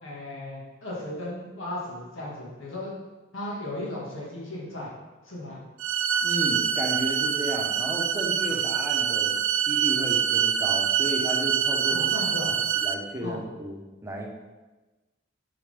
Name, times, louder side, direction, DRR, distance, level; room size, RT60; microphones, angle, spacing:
voice 1, 0.0-2.9 3.3-4.9 5.2-5.6 8.5-8.6 11.9-12.6 13.2-13.4, left 1 dB, 85° left, -5 dB, 1.8 m, -36 dB
sound 1, 5.8-12.9, right 8 dB, 75° right, 0.4 m, -25 dB
voice 2, 6.2-9.3 9.6-12.1 12.4-14.3, right 1 dB, 15° right, -1 dB, 0.9 m, -33 dB
7.0 x 4.9 x 3.5 m, 1.2 s
head